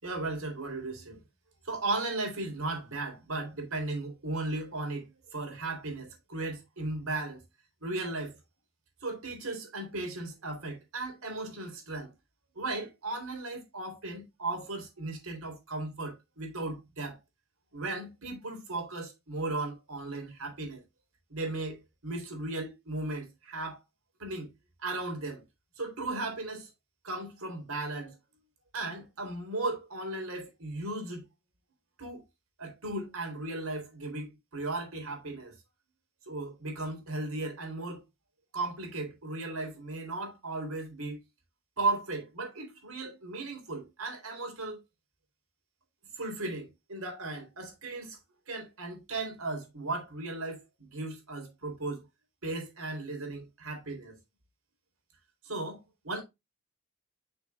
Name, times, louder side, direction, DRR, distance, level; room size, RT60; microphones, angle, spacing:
voice 1, 0.0-1.2 1.6-5.1 5.3-7.4 7.8-8.3 9.0-12.1 12.6-17.2 17.7-20.8 21.3-21.8 22.0-23.8 24.2-24.5 24.8-25.4 25.8-26.7 27.0-28.2 28.7-31.2 32.0-32.2 32.6-35.5 36.3-38.0 38.5-41.2 41.8-44.8 46.2-48.2 48.5-52.0 52.4-54.2 55.4-56.2, right 2 dB, 85° right, 3.8 m, -36 dB
9.3 x 6.0 x 2.4 m
head